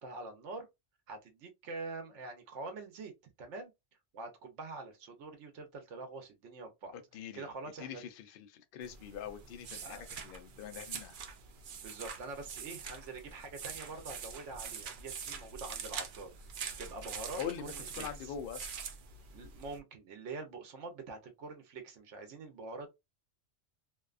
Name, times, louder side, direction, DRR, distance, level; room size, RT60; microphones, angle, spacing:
voice 1, 0.0-0.7 1.1-3.1 3.4-3.7 4.1-6.9 7.3-8.0 9.8-10.0 11.8-16.3 16.8-18.3 19.3-22.9, right 3 dB, 90° right, 1.1 m, -45 dB
voice 2, 7.1-7.5 7.8-11.1 17.4-18.8, left 8 dB, 60° left, 0.6 m, -43 dB
sound 1, 8.8-19.8, right 6 dB, 60° right, 0.6 m, -45 dB
2.7 x 2.2 x 2.3 m
omnidirectional pair, 1.2 m